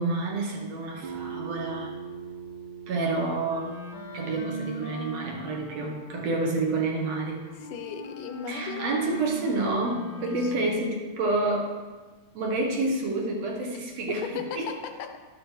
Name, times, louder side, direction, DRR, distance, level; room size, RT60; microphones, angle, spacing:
voice 1, 0.0-1.9 2.9-3.7 4.1-7.4 8.5-11.7 12.3-14.7, right 2 dB, 60° right, 0 dB, 2.0 m, -29 dB
sound 1, 1.0-6.4, right 7 dB, 80° right, 2.9 m, -42 dB
Wind instrument woodwind instrument, 3.5-10.9, equal, 65° left, 1.0 m, -40 dB
voice 2, 7.5-9.0 10.2-10.8 14.2-15.2, left 7 dB, 80° left, 7 dB, 2.4 m, -37 dB
13.0 x 7.9 x 3.2 m, 1.4 s
omnidirectional pair, 3.7 m